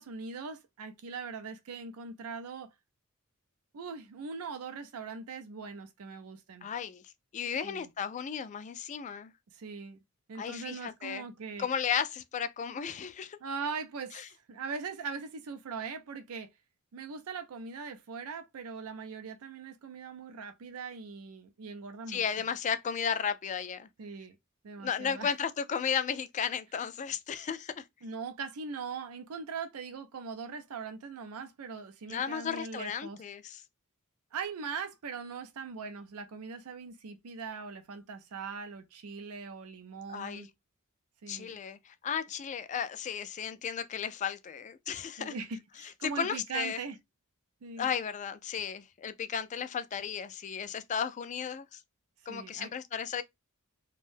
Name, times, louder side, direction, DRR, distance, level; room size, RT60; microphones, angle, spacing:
voice 1, 0.0-2.7 3.7-6.7 7.6-7.9 9.5-10.0 10.3-11.7 13.4-16.5 16.9-22.2 24.0-24.4 24.6-25.3 28.0-33.2 34.3-40.5 41.2-41.6 45.2-47.0 47.6-47.9 52.3-52.7, right 5 dB, 75° right, 0.4 m, -41 dB
voice 2, 6.6-7.0 7.3-9.3 10.4-11.2 11.6-13.4 14.1-14.2 22.1-23.9 24.8-27.8 32.1-33.6 40.1-40.5 41.3-45.3 45.8-46.8 47.8-51.8 52.3-53.2, left 7 dB, 35° left, 0.3 m, -34 dB
2.6 x 2.2 x 3.3 m
head